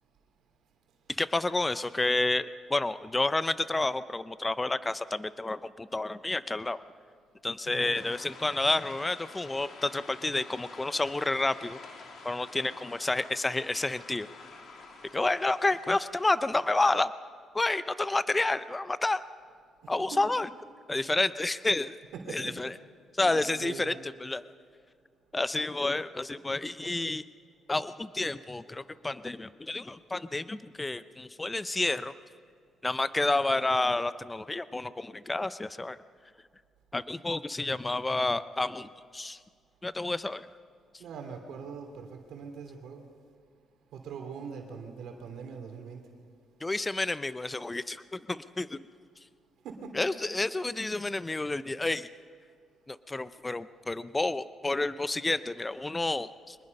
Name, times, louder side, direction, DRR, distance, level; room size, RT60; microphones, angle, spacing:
voice 1, 1.2-6.8 7.4-11.8 12.2-14.3 15.1-17.1 17.5-19.2 19.9-20.5 20.9-21.9 22.3-22.7 23.2-23.9 24.2-24.4 25.3-27.2 27.7-32.1 32.8-36.0 36.9-38.9 39.1-39.4 39.8-40.5 46.6-48.8 49.9-52.1 52.9-56.6, left 2 dB, 20° left, 14 dB, 0.6 m, -30 dB
voice 2, 7.6-8.0 19.8-20.3 22.1-22.5 23.2-24.0 41.0-43.0 43.9-46.0 49.6-50.1, right 6 dB, 80° right, 3 dB, 3.0 m, -42 dB
sound 1, 7.9-16.8, left 4 dB, 60° left, 3.0 m, -49 dB
24.0 x 21.0 x 5.5 m, 2.1 s
cardioid pair, 90°, 0 cm